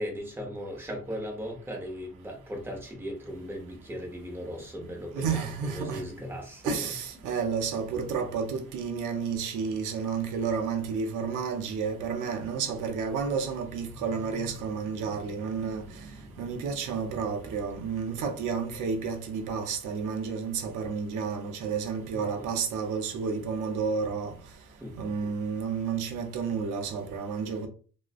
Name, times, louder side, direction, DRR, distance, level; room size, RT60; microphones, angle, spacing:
voice 1, 0.0-6.9 13.9-14.0 14.2-17.2 22.1-22.6 24.8-25.0 25.2-25.3, equal, 5° right, 0.7 m, -39 dB
voice 2, 5.1-6.0 6.6-15.8 16.4-24.3 25.0-27.7, right 5 dB, 85° right, 0.6 m, -31 dB
2.4 x 2.1 x 2.4 m
cardioid pair, 90°, 30 cm